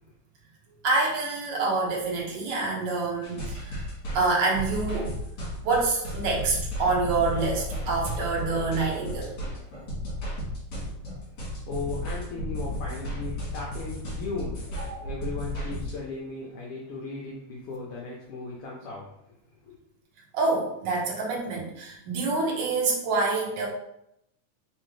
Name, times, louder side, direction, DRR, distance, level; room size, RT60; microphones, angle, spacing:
voice 1, 0.8-3.8 4.1-5.1 5.6-9.3 14.8-15.1 20.3-23.7, right 3 dB, 70° right, -3 dB, 1.0 m, -27 dB
sound 1, 3.2-15.9, left 1 dB, 55° left, 2.1 m, -34 dB
voice 2, 11.7-14.6 15.0-19.0 19.6-19.8, left 3 dB, 70° left, -3 dB, 1.4 m, -36 dB
4.3 x 3.5 x 3.2 m, 0.80 s
omnidirectional pair, 3.3 m